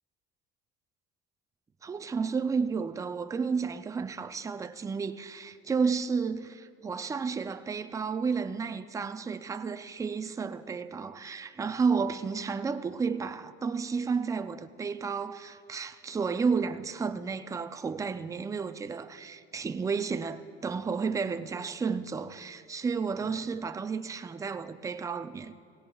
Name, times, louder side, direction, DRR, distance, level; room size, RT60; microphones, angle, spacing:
voice 1, 1.8-25.5, right 5 dB, 10° right, 0.3 m, -32 dB
18.0 x 17.0 x 2.3 m
cardioid pair, 130°, 29 cm